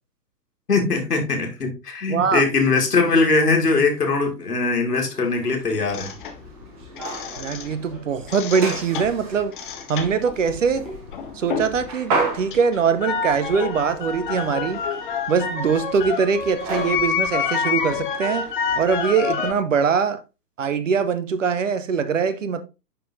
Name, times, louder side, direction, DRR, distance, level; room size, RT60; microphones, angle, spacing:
voice 1, 0.7-6.1, left 3 dB, 70° left, 2.0 m, -21 dB
voice 2, 2.1-2.4 7.4-9.6 9.9-10.9 11.3-14.8 15.3-18.5 18.8-20.2 20.6-22.6, right 6 dB, 50° right, 0.7 m, -22 dB
sound 1, 5.0-18.8, right 3 dB, 25° right, 1.0 m, -34 dB
sound 2, 5.9-7.9 8.2-11.9 12.2-19.5, left 6 dB, 30° left, 0.8 m, -28 dB
10.0 x 3.8 x 2.6 m
figure-of-eight pair, 120°, 49 cm